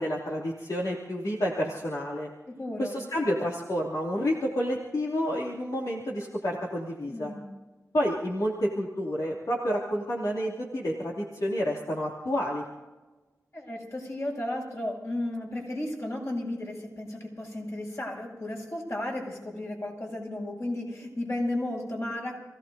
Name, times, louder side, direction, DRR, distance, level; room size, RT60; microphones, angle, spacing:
voice 1, 0.0-2.3 2.8-7.3 7.9-12.6, equal, 70° left, -4 dB, 2.7 m, -29 dB
voice 2, 2.5-2.9 7.1-7.5 13.5-22.3, left 1 dB, 45° left, -2 dB, 7.0 m, -34 dB
29.0 x 17.0 x 2.8 m, 1.2 s
wide cardioid pair, 70°, 6 cm